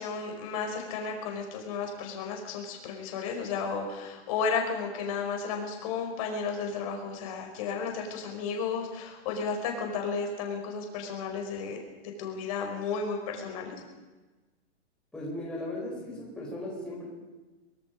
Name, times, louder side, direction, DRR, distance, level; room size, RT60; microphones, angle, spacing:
voice 1, 0.0-13.8, left 5 dB, 30° left, 2 dB, 5.3 m, -33 dB
voice 2, 15.1-17.1, left 1 dB, 5° left, -5 dB, 4.6 m, -37 dB
28.5 x 20.0 x 5.4 m, 1.2 s
hypercardioid pair, 175°, 34 cm